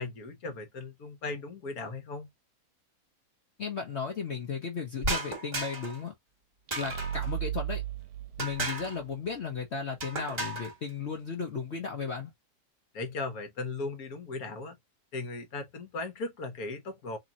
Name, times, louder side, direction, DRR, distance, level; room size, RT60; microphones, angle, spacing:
voice 1, 0.0-2.3 12.9-14.8 15.1-17.2, left 3 dB, 65° left, 1.4 m, -37 dB
voice 2, 3.6-6.1 6.8-7.8 8.4-12.3, left 5 dB, 50° left, 1.0 m, -35 dB
sound 1, 5.0-6.0 6.7-7.3 8.4-9.0 10.0-10.7, right 2 dB, 25° right, 1.3 m, -34 dB
sound 2, 6.7-9.3, right 12 dB, 75° right, 1.0 m, -36 dB
3.8 x 3.1 x 2.8 m
omnidirectional pair, 1.7 m